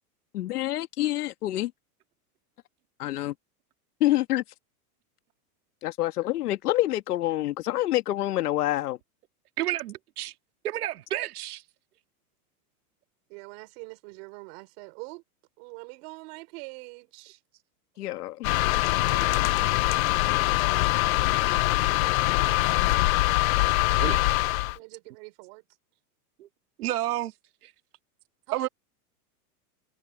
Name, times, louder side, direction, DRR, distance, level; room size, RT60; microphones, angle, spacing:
voice 1, 0.3-1.7 3.0-3.3 4.0-4.4 5.8-9.0 18.0-18.5 19.1-19.3, left 15 dB, 85° left, 1.8 m, -27 dB
voice 2, 9.6-10.3 10.6-11.6 24.0-24.2 26.4-26.5 26.8-27.3 27.6-27.7 28.5-28.7, right 14 dB, 80° right, 2.3 m, -30 dB
voice 3, 13.3-15.2 15.6-17.4 18.6-19.9 21.4-23.2 23.6-23.8 24.7-25.6 28.5-28.7, right 30 dB, 40° right, 4.3 m, -45 dB
sound 1, 18.4-24.8, left 19 dB, 65° left, 0.5 m, -23 dB
supercardioid pair, 170°, 44 cm